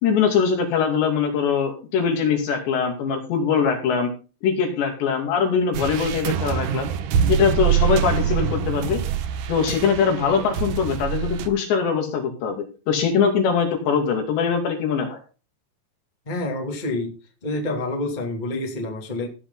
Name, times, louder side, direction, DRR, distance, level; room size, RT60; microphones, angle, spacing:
voice 1, 0.0-4.1 4.4-6.9 7.3-9.0 9.5-15.2, left 6 dB, 75° left, 3 dB, 4.7 m, -22 dB
sound 1, 5.7-11.5, right 8 dB, 85° right, 1.7 m, -24 dB
voice 2, 16.3-17.1 17.4-19.3, left 2 dB, 15° left, 1 dB, 1.8 m, -27 dB
16.0 x 8.3 x 4.0 m, 0.34 s
omnidirectional pair, 5.0 m